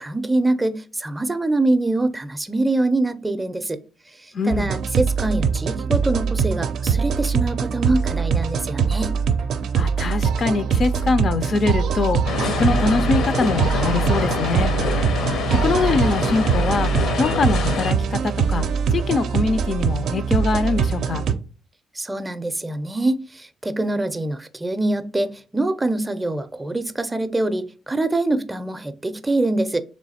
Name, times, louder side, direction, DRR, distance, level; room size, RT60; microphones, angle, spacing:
voice 1, 0.0-3.8 4.4-9.1 22.0-29.8, right 2 dB, 15° right, 0.4 m, -24 dB
voice 2, 4.3-4.7 9.7-14.7 15.6-16.9 17.2-21.2, left 4 dB, 50° left, 0.4 m, -23 dB
sound 1, 4.5-21.3, right 6 dB, 75° right, 0.4 m, -22 dB
sound 2, 12.3-17.9, left 3 dB, 80° left, 0.8 m, -25 dB
3.4 x 3.1 x 4.1 m
cardioid pair, 90°, 0 cm